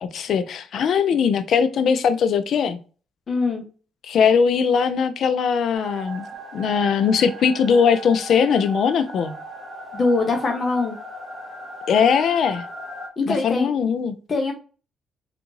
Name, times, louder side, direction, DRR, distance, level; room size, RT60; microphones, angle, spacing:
voice 1, 0.0-2.8 4.0-6.3 6.5-9.3 11.9-12.6 13.3-14.1, left 6 dB, 65° left, 0.4 m, -20 dB
voice 2, 3.3-3.6 9.9-11.0 13.2-13.7 14.3-14.5, left 3 dB, 40° left, 0.7 m, -22 dB
sound 1, 5.7-13.1, right 1 dB, 10° right, 1.8 m, -37 dB
3.5 x 2.5 x 3.0 m
cardioid pair, 90°, 0 cm